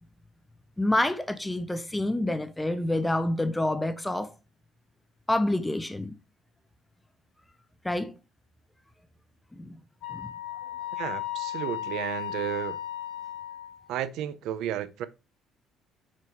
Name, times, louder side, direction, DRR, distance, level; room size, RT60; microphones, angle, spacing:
voice 1, 0.8-4.3 5.3-6.2 7.8-8.1 9.6-9.8 10.1-10.3, left 1 dB, 5° left, 0.4 m, -27 dB
Wind instrument woodwind instrument, 10.0-13.9, left 12 dB, 80° left, 2.5 m, -35 dB
voice 2, 11.0-12.8 13.9-15.1, right 11 dB, 65° right, 0.6 m, -33 dB
5.9 x 4.7 x 4.5 m
cardioid pair, 165°, 0 cm